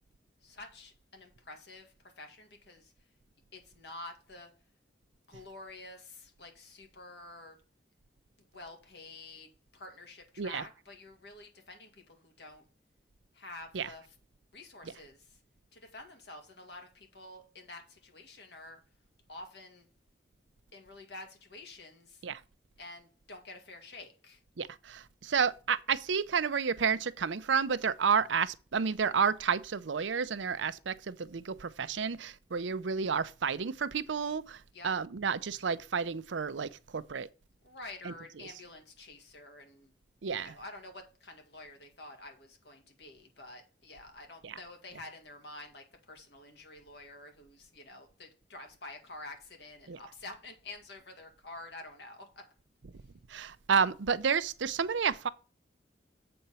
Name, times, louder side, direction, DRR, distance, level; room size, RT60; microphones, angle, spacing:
voice 1, 0.4-2.9 3.5-4.6 5.3-7.6 8.4-12.7 13.3-14.2 14.5-15.4 15.7-18.8 19.3-19.9 20.7-22.2 22.8-24.4 34.7-35.0 37.6-39.9 40.3-52.5, left 2 dB, 65° left, 2.1 m, -49 dB
voice 2, 24.6-37.3 38.0-38.1 40.2-40.5 44.4-44.6 49.9-50.0 53.3-55.3, right 6 dB, 85° right, 0.6 m, -31 dB
7.8 x 4.3 x 6.9 m
head